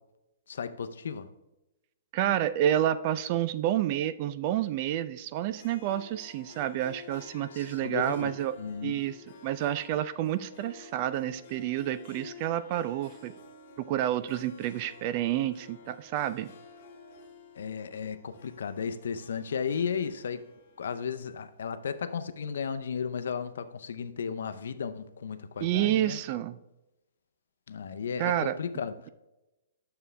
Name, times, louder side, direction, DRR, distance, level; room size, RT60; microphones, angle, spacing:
voice 1, 0.5-1.3 7.5-8.3 8.6-9.0 17.6-20.4 20.8-26.2 27.7-29.1, left 6 dB, 75° left, 0.6 m, -34 dB
voice 2, 2.1-8.6 8.8-9.2 9.4-13.3 13.8-16.5 25.6-26.6 28.2-28.6, right 12 dB, 35° right, 0.3 m, -29 dB
Harp, 5.4-21.9, left 4 dB, 45° left, 2.0 m, -52 dB
9.0 x 6.8 x 3.3 m
hypercardioid pair, 155°, 0 cm